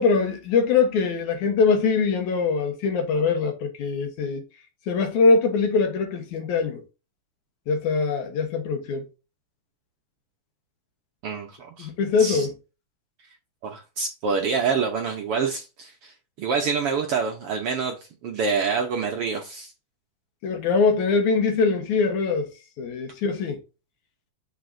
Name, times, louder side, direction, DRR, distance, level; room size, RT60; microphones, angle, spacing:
voice 1, 0.0-4.4 4.9-6.8 7.7-9.1 11.8-12.5 20.4-22.5 22.8-23.6, left 4 dB, 75° left, 2.7 m, -22 dB
voice 2, 11.2-11.9 12.2-12.5 13.6-18.0 18.2-19.7, right 5 dB, 65° right, 1.5 m, -27 dB
6.6 x 6.3 x 2.6 m
omnidirectional pair, 3.5 m